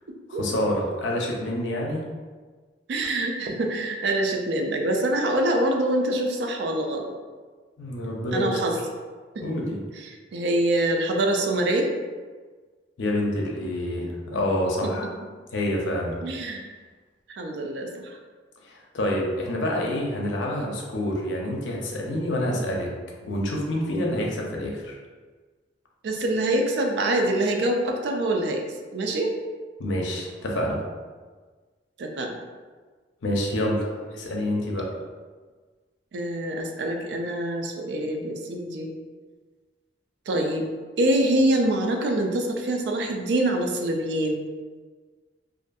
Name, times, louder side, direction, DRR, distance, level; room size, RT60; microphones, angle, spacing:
voice 1, 0.3-2.0 7.8-8.6 9.4-9.8 13.0-15.1 15.5-16.2 18.6-22.9 23.2-25.0 29.8-30.8 33.2-34.9, left 1 dB, 90° left, -1 dB, 0.5 m, -27 dB
voice 2, 2.9-7.1 8.3-8.8 9.3-9.4 10.0-11.9 14.8-14.9 16.2-16.7 17.3-18.2 26.0-28.6 28.9-29.4 32.0-32.4 36.1-38.9 40.3-44.4, right 1 dB, 65° right, 3 dB, 0.3 m, -25 dB
2.5 x 2.5 x 2.2 m, 1.4 s
head